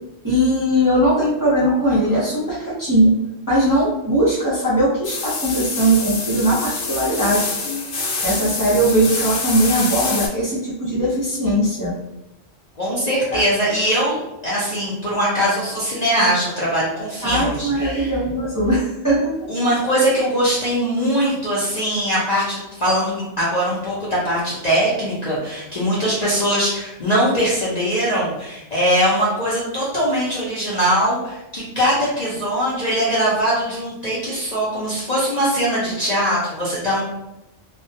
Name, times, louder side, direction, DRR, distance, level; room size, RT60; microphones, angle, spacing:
voice 1, 0.2-3.2 3.5-7.5 8.2-11.9 13.3-13.4 17.2-19.4, right 1 dB, 25° right, -9 dB, 0.5 m, -19 dB
sound 1, 5.0-10.3, left 3 dB, 85° left, 0.9 m, -26 dB
voice 2, 12.8-18.1 19.5-37.0, equal, 45° left, -8 dB, 0.5 m, -21 dB
2.2 x 2.1 x 2.7 m, 0.94 s
omnidirectional pair, 1.3 m